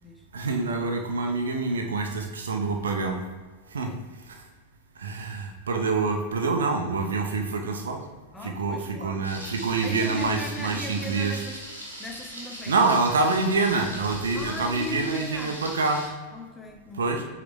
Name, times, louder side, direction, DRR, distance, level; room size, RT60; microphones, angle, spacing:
voice 1, 0.3-3.2 3.7-3.9 4.2-4.4 5.0-8.0 8.4-11.4 12.7-16.0 16.9-17.3, right 3 dB, 70° right, 3 dB, 1.1 m, -26 dB
voice 2, 8.3-9.3 9.8-11.6 12.0-12.8 14.3-15.6 16.3-17.2, left 1 dB, 10° left, 2 dB, 1.5 m, -38 dB
Thunder, 9.2-16.1, equal, 85° right, 1.9 m, -40 dB
8.2 x 5.5 x 3.5 m, 1.4 s
figure-of-eight pair, 90°, 0 cm